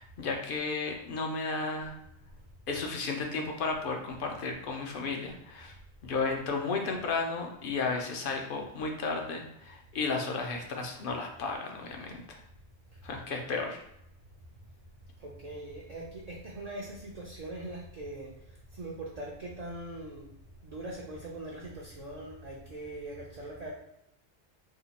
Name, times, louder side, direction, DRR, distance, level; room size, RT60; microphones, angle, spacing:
voice 1, 0.0-1.9 2.7-5.7 6.0-12.4 13.0-13.8, left 4 dB, 55° left, 2 dB, 0.7 m, -33 dB
voice 2, 15.2-20.3 20.6-23.7, right 1 dB, 45° right, -3 dB, 0.6 m, -41 dB
2.8 x 2.3 x 4.0 m, 0.78 s
omnidirectional pair, 1.2 m